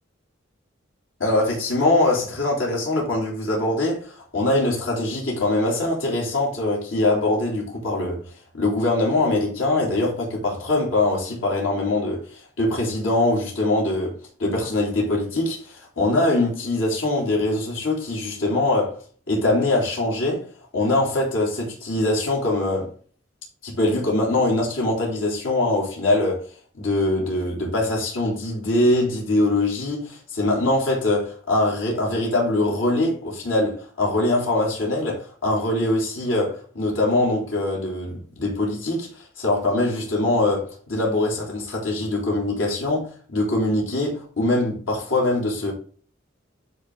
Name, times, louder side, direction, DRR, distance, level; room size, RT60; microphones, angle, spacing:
voice 1, 1.2-8.2 8.5-19.0 19.3-20.5 20.7-22.9 23.6-26.5 26.7-45.7, left 2 dB, 85° left, 3.6 m, -23 dB
10.0 x 4.3 x 3.9 m
head